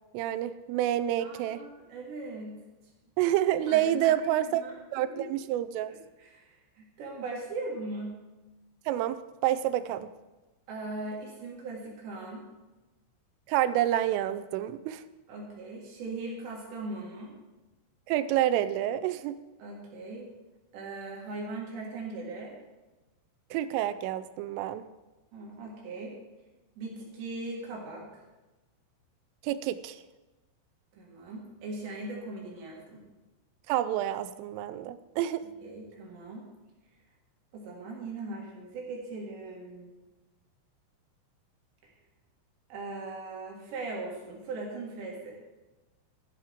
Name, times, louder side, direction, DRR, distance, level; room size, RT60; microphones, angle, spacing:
voice 1, 0.1-1.6 3.2-4.6 4.9-5.9 8.9-10.1 13.5-15.0 18.1-19.3 23.5-24.8 29.4-30.0 33.7-35.4, right 12 dB, 85° right, 13 dB, 3.1 m, -28 dB
voice 2, 1.2-2.6 3.7-4.8 5.1-5.3 5.9-8.1 10.7-12.5 15.3-17.4 19.6-20.3 20.7-22.6 25.3-26.2 26.8-28.2 30.9-33.1 35.6-36.5 37.5-40.0 41.8-41.9 42.7-45.4, right 3 dB, 65° right, -2 dB, 3.8 m, -39 dB
15.0 x 12.0 x 3.6 m, 1.1 s
omnidirectional pair, 5.8 m